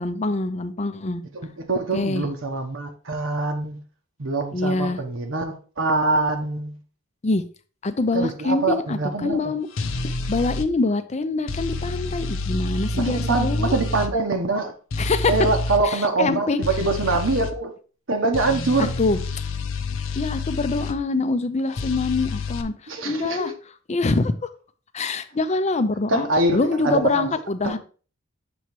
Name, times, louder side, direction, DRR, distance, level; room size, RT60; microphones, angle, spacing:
voice 1, 0.0-1.2 1.9-2.3 4.5-5.0 7.2-7.4 7.8-9.7 10.0-13.7 15.0-15.3 15.8-16.6 18.8-19.2 20.1-23.5 23.9-24.5 24.9-26.3 26.5-27.8, left 3 dB, 35° left, 0.5 m, -24 dB
voice 2, 1.3-3.8 4.2-6.8 8.1-9.5 12.9-14.7 15.3-17.7 18.1-18.9 22.9-23.5 26.1-27.3 27.6-27.8, right 3 dB, 70° right, 0.9 m, -24 dB
sound 1, 9.8-10.7 11.5-14.1 14.9-15.8 16.6-17.5 18.3-21.0 21.8-22.6, left 3 dB, 75° left, 0.6 m, -28 dB
7.0 x 3.1 x 4.5 m
head